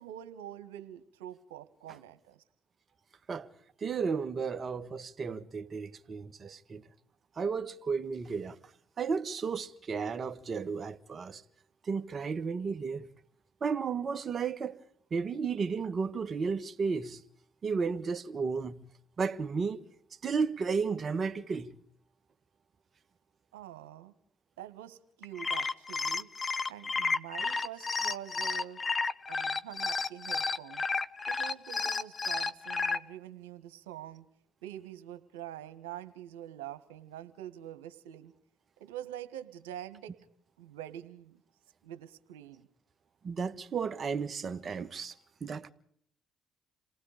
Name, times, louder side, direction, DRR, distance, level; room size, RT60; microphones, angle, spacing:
voice 1, 0.0-2.4 23.5-24.1 24.6-26.3 26.7-28.8 29.3-30.8 31.3-34.3 34.6-38.3 38.8-40.1 40.6-41.4 41.8-42.7, right 12 dB, 90° right, 1.5 m, -45 dB
voice 2, 3.8-6.8 7.4-8.6 9.0-11.4 11.8-13.1 13.6-14.8 15.1-17.2 17.6-18.9 19.2-19.8 20.2-21.7 43.2-45.1 45.4-45.7, right 5 dB, 45° right, 1.6 m, -33 dB
sound 1, 25.2-33.0, left 4 dB, 35° left, 1.1 m, -32 dB
28.5 x 18.5 x 5.2 m
hypercardioid pair, 55°, 0 cm